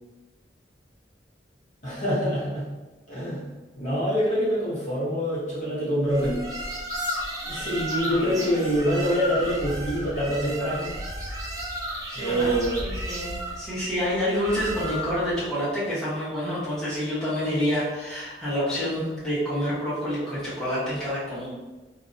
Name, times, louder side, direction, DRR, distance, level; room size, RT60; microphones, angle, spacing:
voice 1, 1.8-2.7 3.1-3.5 3.8-6.4 7.4-11.0 12.1-12.8, equal, 45° left, -8 dB, 0.7 m, -25 dB
sound 1, 6.1-15.3, equal, 20° right, 0.4 m, -34 dB
voice 2, 7.9-8.7 8.9-9.2 12.1-12.5 12.8-21.5, equal, 5° left, -11 dB, 0.8 m, -28 dB
sound 2, 9.5-15.5, equal, 55° right, 0.7 m, -39 dB
2.4 x 2.0 x 2.5 m, 1.2 s
head